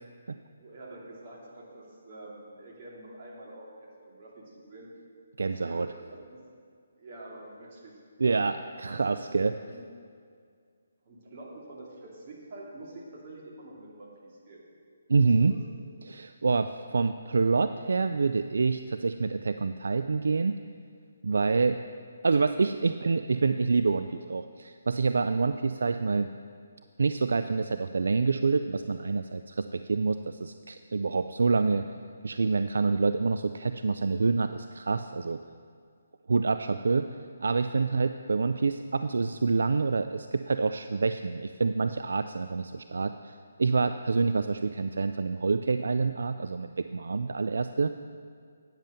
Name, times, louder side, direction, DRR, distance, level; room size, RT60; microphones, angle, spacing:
voice 1, 0.6-5.0 5.6-6.4 7.0-8.0 8.7-9.8 11.0-14.6 15.2-15.7 36.9-37.1, right 2 dB, 40° right, -3 dB, 2.5 m, -47 dB
voice 2, 5.4-5.9 8.2-9.6 15.1-15.5 16.0-20.6 21.2-21.8 22.2-26.3 27.0-31.8 32.2-35.4 36.3-37.1 37.4-47.9, right 4 dB, 70° right, 9 dB, 0.3 m, -27 dB
8.9 x 7.6 x 6.7 m, 2.2 s
figure-of-eight pair, 150°, 0 cm